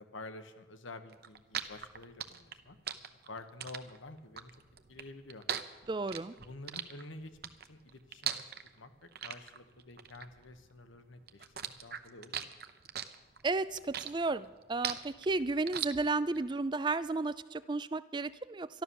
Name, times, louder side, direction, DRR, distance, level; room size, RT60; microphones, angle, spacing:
voice 1, 0.0-2.8 3.3-4.5 4.9-5.4 6.4-7.3 7.7-8.4 8.8-12.5, left 2 dB, 85° left, 9 dB, 1.3 m, -49 dB
sound 1, 1.1-11.0 11.3-16.4, right 9 dB, 50° right, 0.8 m, -40 dB
voice 2, 5.9-6.3 13.4-18.8, right 3 dB, 25° right, 16 dB, 0.4 m, -33 dB
12.5 x 12.0 x 7.1 m, 1.1 s
head